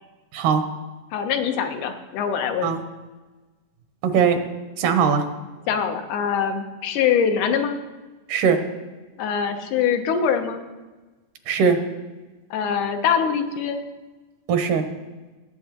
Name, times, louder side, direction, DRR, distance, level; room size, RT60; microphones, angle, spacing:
voice 1, 1.1-2.7 5.7-7.8 9.2-10.6 12.5-13.8, left 7 dB, 90° left, 6 dB, 2.4 m, -23 dB
voice 2, 4.0-4.4 4.8-5.2 8.3-8.6 11.5-11.8 14.5-14.8, right 6 dB, 90° right, 7 dB, 2.4 m, -19 dB
17.5 x 7.7 x 2.9 m, 1.2 s
omnidirectional pair, 3.5 m